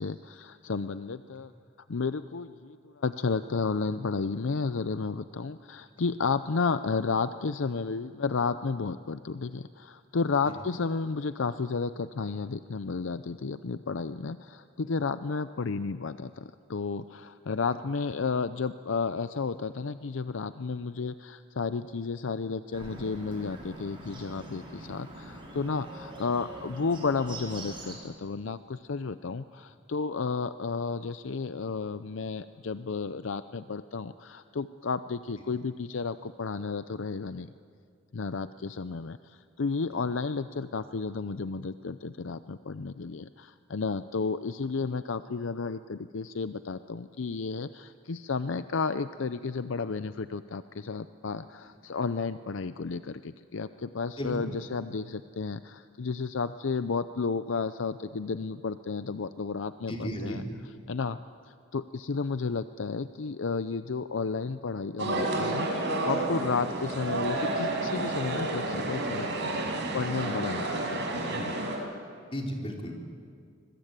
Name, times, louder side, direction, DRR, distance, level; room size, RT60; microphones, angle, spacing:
voice 1, 0.0-1.5 1.9-37.5 38.1-60.4 60.9-61.2 61.5-69.5 69.9-71.7, left 4 dB, 65° left, 12 dB, 0.6 m, -32 dB
Bird, 22.7-27.9, right 2 dB, 25° right, 5.9 m, -44 dB
voice 2, 54.2-54.6 59.9-60.4 69.5-69.8 72.3-73.0, equal, 25° left, 1 dB, 3.7 m, -35 dB
sound 1, 65.0-71.8, right 2 dB, 60° right, 5.4 m, -30 dB
25.5 x 21.5 x 9.0 m, 2.2 s
head